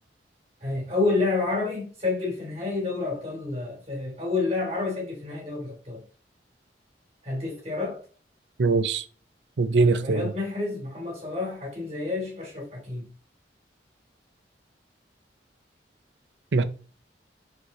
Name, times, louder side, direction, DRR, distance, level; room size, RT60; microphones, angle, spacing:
voice 1, 0.6-6.0 7.2-8.0 9.9-13.1, left 3 dB, 40° right, 3.4 m, -29 dB
voice 2, 8.6-9.0 9.6-10.3 16.5-16.6, right 3 dB, 90° right, 0.6 m, -22 dB
4.9 x 4.8 x 4.3 m
head